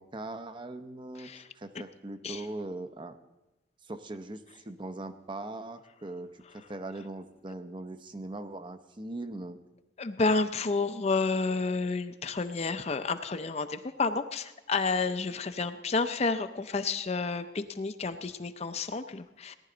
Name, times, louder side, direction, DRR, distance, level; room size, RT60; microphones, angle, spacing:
voice 1, 0.0-1.3 1.5-3.2 3.8-9.6, right 2 dB, 25° right, 9 dB, 0.7 m, -40 dB
voice 2, 10.0-19.5, left 4 dB, 35° left, 9 dB, 0.5 m, -30 dB
18.0 x 11.0 x 3.9 m, 1.0 s
head